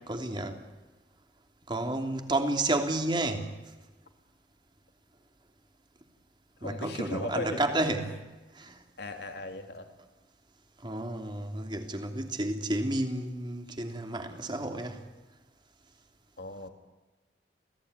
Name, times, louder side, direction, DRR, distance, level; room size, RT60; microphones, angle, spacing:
voice 1, 0.1-0.6 1.7-3.5 6.6-8.3 8.5-8.8 10.8-15.0, right 2 dB, 25° right, 4 dB, 3.0 m, -31 dB
voice 2, 6.6-7.6 9.0-9.9 16.4-16.7, left 2 dB, 65° left, 5 dB, 3.3 m, -37 dB
29.0 x 18.0 x 9.8 m, 1.2 s
head